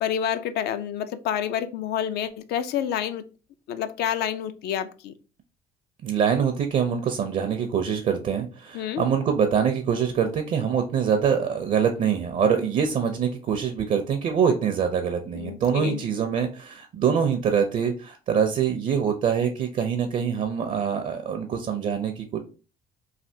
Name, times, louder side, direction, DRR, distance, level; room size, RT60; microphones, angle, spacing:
voice 1, 0.0-3.2 3.7-5.1 8.7-9.0 15.3-16.0, left 9 dB, 75° left, 0.4 m, -28 dB
voice 2, 6.0-22.4, right 7 dB, 50° right, 0.5 m, -24 dB
3.3 x 2.4 x 2.7 m
cardioid pair, 110°, 17 cm